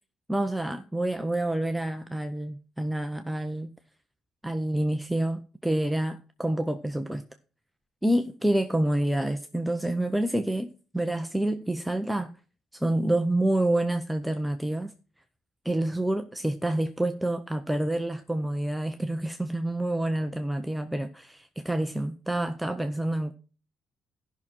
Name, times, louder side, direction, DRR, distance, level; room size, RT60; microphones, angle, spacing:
voice 1, 0.3-3.7 4.4-7.2 8.0-12.3 12.7-14.9 15.6-23.3, right 1 dB, ahead, 0.7 m, -28 dB
14.5 x 6.0 x 4.3 m
cardioid pair, 135°, 0 cm